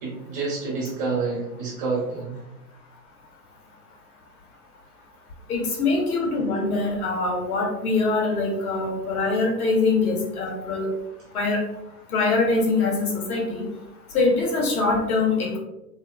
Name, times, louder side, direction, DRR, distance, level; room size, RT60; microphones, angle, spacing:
voice 1, 0.0-2.4, right 4 dB, 15° right, -7 dB, 0.4 m, -28 dB
voice 2, 5.5-10.9 11.3-11.6 12.1-13.6 14.1-15.6, left 3 dB, 65° left, -1 dB, 1.1 m, -23 dB
2.5 x 2.4 x 2.2 m, 0.92 s
hypercardioid pair, 145°, 47 cm